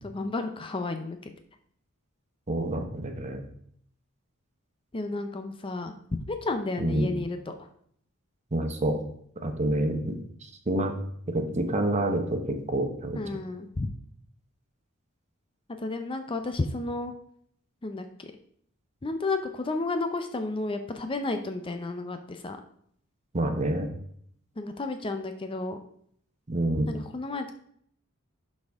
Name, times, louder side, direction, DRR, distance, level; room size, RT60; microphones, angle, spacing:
voice 1, 0.0-1.3 4.9-5.9 6.3-7.7 13.1-13.9 15.8-17.1 17.8-18.3 19.0-22.6 24.6-25.8 26.9-27.5, left 2 dB, 25° left, 7 dB, 0.5 m, -32 dB
voice 2, 2.5-3.4 6.8-7.1 8.5-9.0 9.4-11.0 11.3-13.2 23.3-23.9 26.5-26.9, right 1 dB, 30° right, 6 dB, 0.9 m, -28 dB
11.5 x 4.2 x 3.5 m, 0.66 s
head